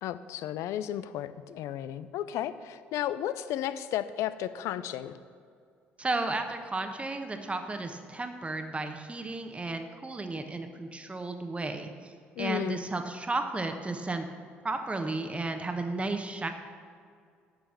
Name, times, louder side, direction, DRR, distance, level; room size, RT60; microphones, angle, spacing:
voice 1, 0.0-5.2 12.4-12.8, left 11 dB, 60° left, 13 dB, 0.5 m, -33 dB
voice 2, 6.0-12.1 12.4-14.3 14.6-16.5, right 2 dB, 20° right, 6 dB, 1.1 m, -33 dB
10.0 x 6.6 x 6.0 m, 2.2 s
figure-of-eight pair, 50°, 6 cm